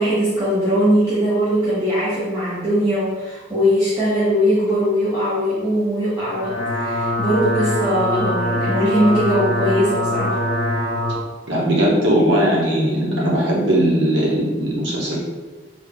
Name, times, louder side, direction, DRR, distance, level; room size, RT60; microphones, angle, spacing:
voice 1, 0.0-10.4 15.1-15.2, equal, 15° right, -12 dB, 0.8 m, -20 dB
sound 1, 6.2-11.2, left 1 dB, 30° left, 0.6 m, -23 dB
voice 2, 11.5-15.2, right 1 dB, 70° right, -4 dB, 1.1 m, -18 dB
3.8 x 2.3 x 3.6 m, 1.3 s
head